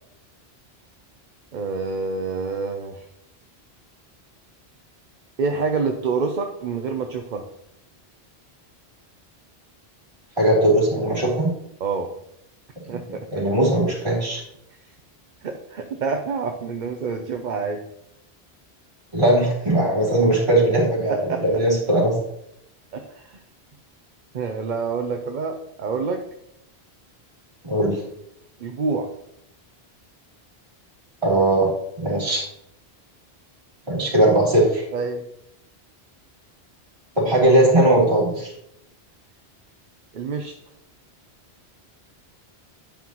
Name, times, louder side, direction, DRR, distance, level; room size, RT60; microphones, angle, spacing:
voice 1, 1.5-3.0 5.4-7.4 11.8-12.1 12.9-13.5 15.4-17.8 21.1-21.4 22.9-23.4 24.3-26.2 28.6-29.1 34.9-35.2 40.1-40.5, right 4 dB, 55° right, 4 dB, 0.7 m, -27 dB
voice 2, 10.4-11.5 12.9-13.0 13.3-14.4 19.1-22.2 27.6-28.0 31.2-31.7 32.0-32.4 33.9-34.9 37.2-38.5, right 1 dB, 30° right, -7 dB, 3.2 m, -19 dB
10.5 x 5.6 x 3.0 m, 0.77 s
omnidirectional pair, 1.1 m